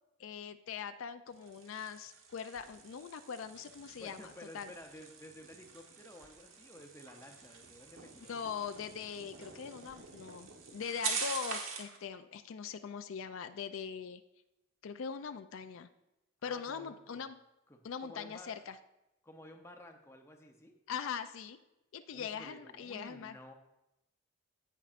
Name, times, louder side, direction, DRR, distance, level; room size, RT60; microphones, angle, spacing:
voice 1, 0.2-4.7 8.2-14.2 14.8-15.9 16.4-17.4 17.8-18.8 20.9-21.6 21.9-23.3, left 7 dB, 70° left, 10 dB, 0.4 m, -41 dB
sound 1, 1.3-12.0, right 5 dB, 80° right, 1.2 m, -44 dB
voice 2, 3.9-8.3 9.8-10.0 16.4-17.2 17.7-18.5 19.2-20.7 22.1-23.5, left 1 dB, 10° left, 3 dB, 0.6 m, -53 dB
15.5 x 5.4 x 2.5 m, 0.93 s
head